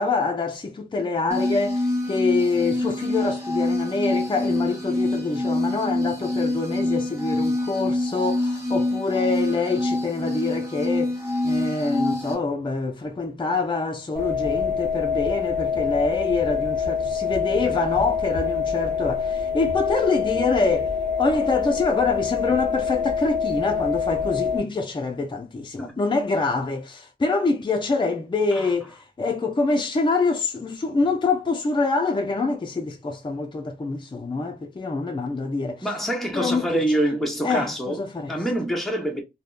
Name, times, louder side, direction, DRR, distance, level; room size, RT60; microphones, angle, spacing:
voice 1, 0.0-35.9 36.3-36.8 37.4-38.4, left 3 dB, 30° left, 0.5 m, -25 dB
sound 1, 1.3-12.3, left 1 dB, 20° right, 1.1 m, -26 dB
sound 2, 14.2-24.6, left 6 dB, 45° right, 1.0 m, -25 dB
voice 2, 35.8-38.0 38.3-39.2, right 1 dB, ahead, 1.0 m, -25 dB
3.4 x 2.1 x 2.4 m
wide cardioid pair, 75°, 16 cm